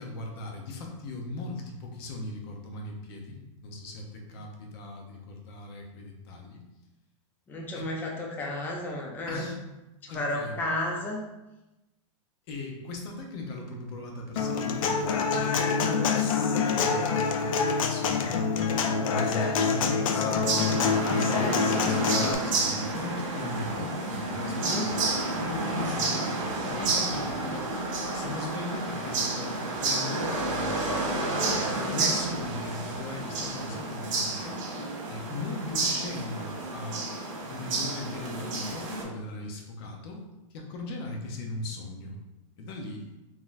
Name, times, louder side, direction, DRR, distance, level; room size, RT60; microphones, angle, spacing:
voice 1, 0.0-6.6 7.7-7.8 9.3-9.6 10.1-10.6 12.5-18.5 19.1-26.3 26.7-27.7 28.1-31.0 31.9-34.7 35.1-37.0 37.4-40.2 40.5-42.2 42.6-43.1, left 2 dB, 50° left, 1 dB, 0.8 m, -38 dB
voice 2, 7.5-9.5 10.0-11.2 24.5-24.9 26.7-26.9 32.0-32.2, left 1 dB, 10° left, 0 dB, 0.4 m, -33 dB
Human voice / Acoustic guitar, 14.4-22.3, left 5 dB, 80° left, 0.4 m, -26 dB
sound 1, 20.4-39.0, right 2 dB, 65° right, 1.3 m, -30 dB
3.9 x 2.8 x 2.6 m, 0.99 s
supercardioid pair, 150°, 17 cm